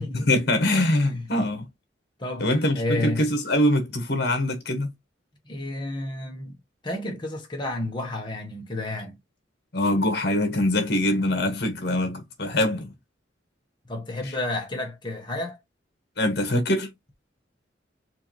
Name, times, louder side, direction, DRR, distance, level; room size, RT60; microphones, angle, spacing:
voice 1, 0.1-1.7 2.4-4.9 9.7-12.9 14.2-14.3 16.2-16.9, left 1 dB, 60° left, 1.3 m, -23 dB
voice 2, 2.7-3.2 5.5-6.5 6.8-9.1 13.9-15.6, left 2 dB, 25° left, 1.1 m, -31 dB
4.5 x 2.7 x 3.0 m
head